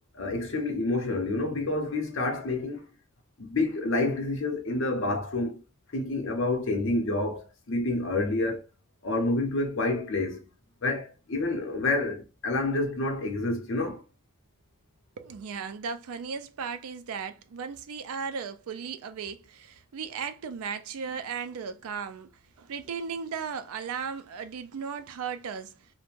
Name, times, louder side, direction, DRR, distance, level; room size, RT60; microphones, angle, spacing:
voice 1, 0.1-2.9 3.4-5.6 5.9-8.6 9.0-10.5 10.8-14.0, left 2 dB, 65° left, 0.6 m, -28 dB
voice 2, 15.2-25.9, right 6 dB, 90° right, 0.4 m, -36 dB
2.5 x 2.1 x 3.0 m
head